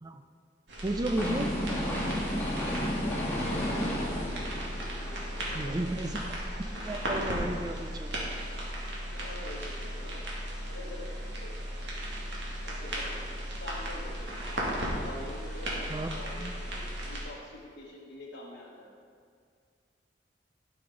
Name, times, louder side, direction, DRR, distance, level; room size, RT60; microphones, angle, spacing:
sound 1, 0.7-17.2, equal, 75° right, 2.1 m, -36 dB
voice 1, 0.8-1.5 5.5-6.2 6.5-8.3 15.9-16.1 16.4-16.5, right 1 dB, 20° right, 7 dB, 0.5 m, -33 dB
sound 2, 1.1-7.1 7.5-7.6, equal, 10° left, 1.8 m, -33 dB
voice 2, 2.9-6.1 9.1-10.3 10.7-11.1 11.4-11.6 12.6-14.3 14.9-18.9, left 1 dB, 80° left, -6 dB, 1.2 m, -46 dB
12.5 x 6.9 x 3.8 m, 2.1 s
head